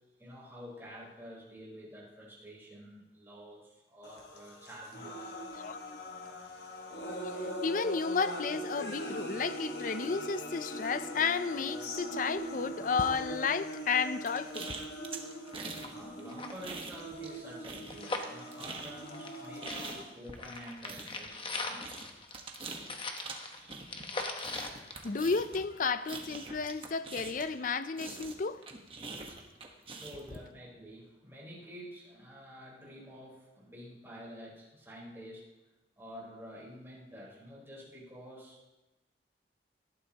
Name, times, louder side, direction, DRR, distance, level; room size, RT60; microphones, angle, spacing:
voice 1, 0.2-5.3 15.7-21.9 29.9-35.5 36.0-38.7, equal, 15° right, 4.3 m, -49 dB
sound 1, 4.0-20.0, equal, 65° left, 1.5 m, -41 dB
voice 2, 7.6-14.7 25.0-28.6, left 5 dB, 50° left, 0.5 m, -32 dB
sound 2, 14.3-15.9 16.2-17.4 17.6-27.6 28.0-30.4, right 3 dB, 30° right, 1.3 m, -44 dB
sound 3, 15.5-15.6 15.8-15.9 16.2-19.4 19.7-25.8 26.1-26.2, left 3 dB, 30° left, 1.1 m, -40 dB
18.5 x 12.5 x 3.0 m
head